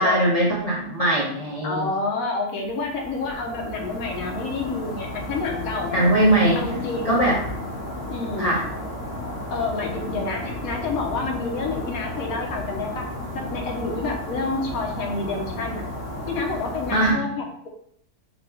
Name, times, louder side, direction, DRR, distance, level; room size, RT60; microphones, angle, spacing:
voice 1, 0.0-1.9 5.9-6.6 7.0-7.4 8.4-8.6 16.9-17.2, right 1 dB, 30° left, -8 dB, 0.8 m, -20 dB
voice 2, 1.6-6.1 6.5-7.2 8.1-8.5 9.5-13.1 13.3-15.8 16.3-17.7, left 3 dB, 70° left, 2 dB, 1.2 m, -29 dB
sound 1, 2.6-17.1, left 1 dB, 45° left, 1.1 m, -33 dB
4.0 x 2.3 x 4.3 m, 0.67 s
omnidirectional pair, 1.6 m